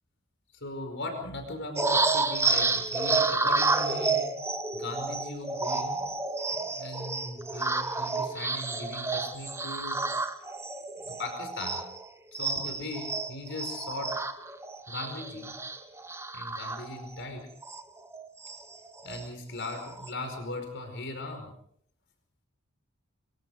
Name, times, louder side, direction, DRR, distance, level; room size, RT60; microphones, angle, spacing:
voice 1, 0.5-4.3 4.7-6.2 6.5-10.0 11.0-11.8 12.4-14.1 14.9-15.6 16.3-17.5 19.0-21.5, left 2 dB, 55° left, 5 dB, 5.0 m, -39 dB
sound 1, 1.8-12.1 12.3-17.2 17.6-17.8 18.1-19.3 19.6-20.1, right 3 dB, 10° right, 1.2 m, -30 dB
24.5 x 24.0 x 5.0 m, 0.68 s
head